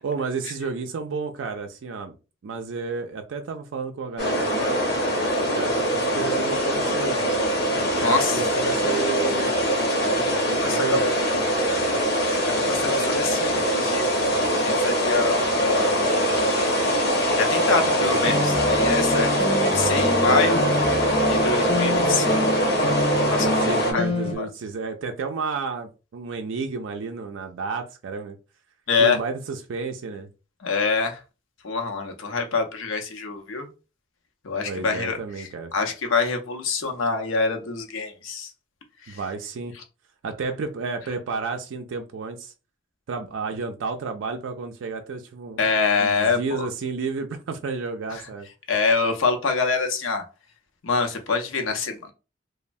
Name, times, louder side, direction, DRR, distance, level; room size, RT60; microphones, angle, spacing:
voice 1, 0.0-2.2 2.4-4.8 5.5-7.4 7.7-9.5 10.6-11.0 17.8-18.4 23.4-28.4 29.0-30.3 34.6-35.7 39.1-39.7 40.2-42.5 43.1-45.6 46.0-48.5, right 4 dB, 75° right, 0.4 m, -31 dB
sound 1, 4.2-23.9, equal, 50° left, 0.8 m, -22 dB
voice 2, 7.9-8.4 10.0-11.1 12.5-16.8 17.4-20.6 21.3-22.7 23.2-24.1 24.4-24.5 28.9-29.2 30.6-31.2 31.6-33.7 34.4-38.5 39.0-39.2 45.6-46.7 48.1-48.2 48.7-50.2 50.8-52.1, left 4 dB, 85° left, 0.6 m, -26 dB
sound 2, 18.2-24.4, left 1 dB, 30° left, 0.4 m, -27 dB
3.1 x 2.1 x 2.5 m
head